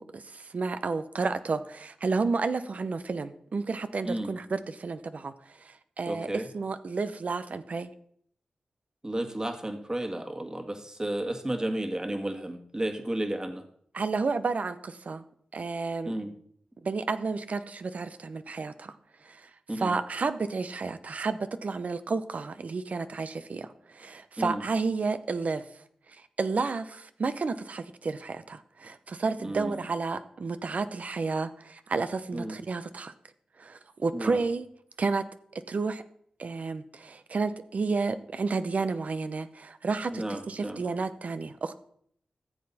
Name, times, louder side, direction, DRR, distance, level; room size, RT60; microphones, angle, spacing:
voice 1, 0.0-5.3 5.6-7.9 13.9-15.2 15.5-16.1 16.8-18.9 19.2-19.5 19.7-25.6 26.4-33.1 33.6-34.7 35.0-35.2 35.5-36.0 36.4-41.7, right 4 dB, 65° right, 12 dB, 0.7 m, -31 dB
voice 2, 6.1-6.5 9.0-13.6 16.0-16.3 19.7-19.9 24.4-24.6 29.4-29.8 32.3-32.6 34.1-34.4 40.1-40.8, right 1 dB, 25° right, 6 dB, 1.7 m, -32 dB
13.5 x 7.6 x 4.1 m, 0.64 s
cardioid pair, 40°, 3 cm